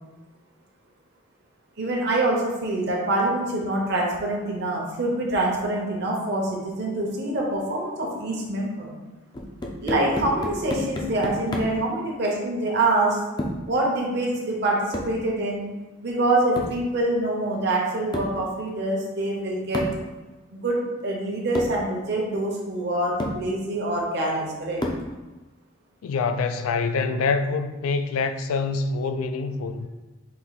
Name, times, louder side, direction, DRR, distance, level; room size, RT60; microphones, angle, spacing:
voice 1, 1.8-8.9 9.8-13.2 13.7-15.7 16.0-19.9 20.5-24.8, right 2 dB, 50° right, 0.8 m, -25 dB
sound 1, 9.3-11.9 13.4-13.7 14.9-15.2 16.6-16.9 18.1-18.4 19.7-20.1 21.0-21.1 21.5-21.8 22.7-22.8 23.2-23.5 24.8-25.2, left 1 dB, 20° left, 0.4 m, -31 dB
voice 2, 26.0-29.9, left 4 dB, 90° left, 0.4 m, -25 dB
4.2 x 2.7 x 4.0 m
head